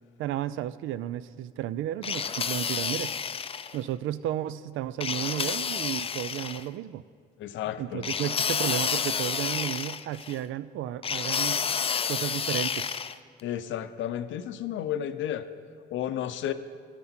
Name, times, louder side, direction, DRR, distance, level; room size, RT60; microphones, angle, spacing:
voice 1, 0.2-3.2 3.7-7.0 7.8-11.6 12.1-13.0, right 12 dB, 85° right, 16 dB, 0.4 m, -33 dB
sound 1, 2.0-3.8 5.0-6.6 8.0-10.4 11.0-13.2, left 6 dB, 30° left, 0.4 m, -30 dB
voice 2, 7.4-8.0 13.4-15.5 15.9-16.5, left 11 dB, 75° left, 12 dB, 0.6 m, -32 dB
12.5 x 8.7 x 4.4 m, 2.2 s
cardioid pair, 90°, 20 cm